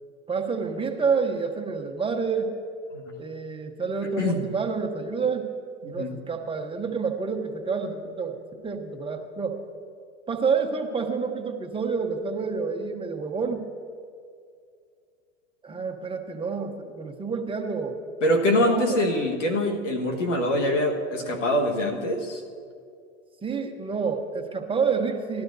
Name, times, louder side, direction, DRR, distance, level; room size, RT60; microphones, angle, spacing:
voice 1, 0.3-2.5 3.2-5.5 5.8-9.6 10.3-13.7 15.6-18.0 18.6-19.0 23.4-25.4, right 5 dB, 15° right, 3 dB, 1.0 m, -28 dB
voice 2, 4.0-4.4 5.8-6.1 18.2-22.4, left 1 dB, 90° left, 2 dB, 1.5 m, -24 dB
17.5 x 12.0 x 2.7 m, 2.3 s
hypercardioid pair, 95°, 36 cm